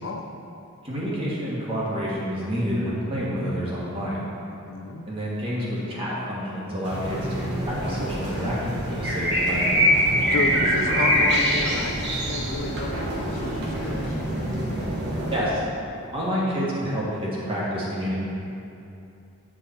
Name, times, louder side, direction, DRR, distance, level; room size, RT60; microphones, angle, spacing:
voice 1, 0.8-4.3 5.1-9.7 15.3-15.6 16.1-18.2, equal, 25° right, -7 dB, 1.5 m, -28 dB
voice 2, 4.5-5.1 10.3-12.9 13.3-14.2, left 3 dB, 65° left, 4 dB, 0.5 m, -32 dB
sound 1, 6.8-15.4, equal, 55° right, 1.4 m, -24 dB
9.3 x 4.9 x 4.2 m, 2.7 s
head